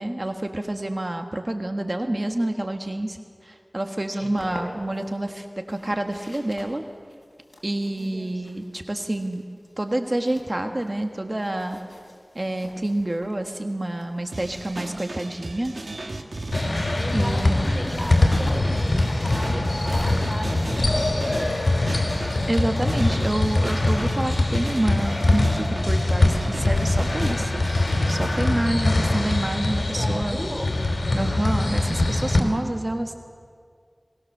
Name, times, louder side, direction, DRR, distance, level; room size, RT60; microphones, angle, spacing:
voice 1, 0.0-3.2 3.4-6.8 7.6-9.4 9.8-11.8 12.3-15.7 17.1-17.6 22.5-27.5 28.1-30.4 31.2-33.1, right 1 dB, 40° right, 5 dB, 1.3 m, -28 dB
sound 1, 4.0-5.1 5.7-11.1 11.4-16.0 17.0-22.6, left 1 dB, 55° left, 4.5 m, -44 dB
voice 2, 7.8-8.3 17.0-22.1 28.9-29.3 29.9-30.7, equal, 10° right, 4 dB, 3.3 m, -36 dB
sound 2, 14.3-28.5, right 2 dB, 85° right, 1.5 m, -36 dB
sound 3, 16.5-32.4, left 2 dB, 85° left, 2.9 m, -23 dB
22.0 x 19.5 x 6.7 m, 2.1 s
wide cardioid pair, 50°, 0 cm